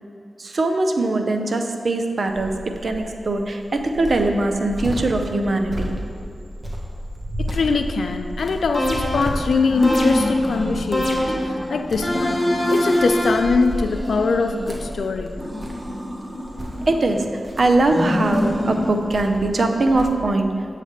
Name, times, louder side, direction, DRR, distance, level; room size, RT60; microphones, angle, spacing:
voice 1, 0.4-6.0 16.9-20.7, right 2 dB, 65° right, 5 dB, 0.6 m, -21 dB
Cricket, 2.3-20.0, equal, 40° right, 1.3 m, -33 dB
voice 2, 7.4-15.4, left 4 dB, 80° left, 7 dB, 0.4 m, -22 dB
sound 1, 8.7-9.4 9.8-10.5 10.9-11.6 12.0-13.6, equal, 20° left, 1.3 m, -23 dB
sound 2, 9.6-10.8 11.2-13.3 13.7-14.9 15.4-17.3 17.8-19.0, left 1 dB, 5° right, 1.2 m, -28 dB
8.2 x 3.3 x 6.6 m, 2.5 s
cardioid pair, 45°, 0 cm